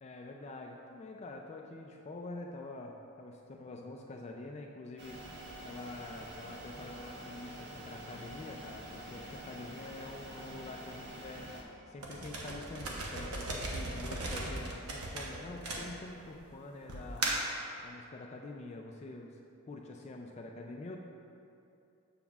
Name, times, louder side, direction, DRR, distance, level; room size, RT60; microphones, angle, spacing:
voice 1, 0.0-5.2 5.6-11.5 11.9-17.4 17.8-19.4 19.7-21.0, left 2 dB, 30° left, 1 dB, 0.3 m, -46 dB
sound 1, 5.0-11.6, right 1 dB, 50° right, 0.8 m, -47 dB
sound 2, 12.0-16.3 16.9-17.6, right 2 dB, 85° right, 0.9 m, -37 dB
7.2 x 6.9 x 2.3 m, 2.7 s
head